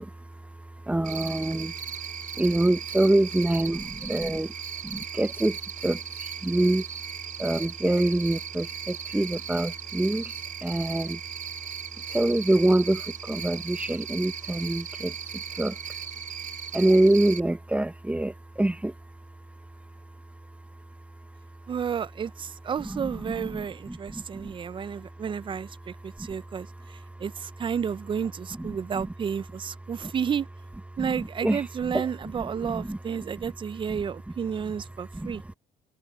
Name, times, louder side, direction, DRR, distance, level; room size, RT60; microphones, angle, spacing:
voice 1, 0.0-21.7 22.8-25.3 25.8-27.2 28.5-29.1 30.0-30.1 30.9-33.0 33.4-33.5 33.9-34.0 35.0-35.5, right 1 dB, 10° right, 1.2 m, -28 dB
Cricket, 1.0-17.4, right 8 dB, 50° right, 6.5 m, -37 dB
voice 2, 21.7-26.7 27.2-30.5 31.0-35.4, right 7 dB, 30° right, 0.5 m, -31 dB
cardioid pair, 110°, 17 cm